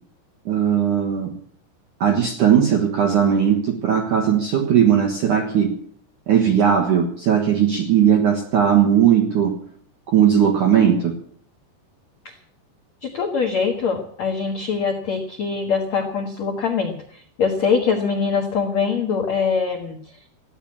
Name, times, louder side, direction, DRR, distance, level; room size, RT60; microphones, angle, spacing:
voice 1, 0.5-1.3 2.0-5.7 6.3-9.5 10.1-11.1, right 8 dB, 65° right, 1 dB, 2.0 m, -18 dB
voice 2, 13.0-20.0, left 5 dB, 80° left, 1 dB, 1.5 m, -23 dB
15.0 x 10.5 x 8.6 m, 0.62 s
omnidirectional pair, 5.8 m